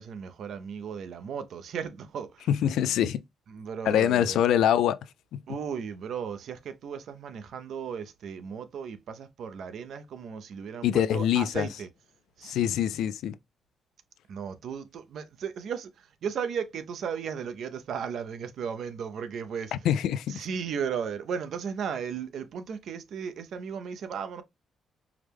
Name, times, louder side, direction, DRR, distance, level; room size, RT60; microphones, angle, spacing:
voice 1, 0.0-2.5 3.5-4.4 5.5-11.9 12.4-12.8 14.3-19.7 20.3-24.4, right 7 dB, 65° right, 0.5 m, -35 dB
voice 2, 2.5-3.2 3.9-5.0 5.3-5.4 10.8-11.7 12.4-13.4 19.7-20.4, left 10 dB, 85° left, 0.3 m, -24 dB
4.7 x 2.1 x 3.3 m
cardioid pair, 130°, 0 cm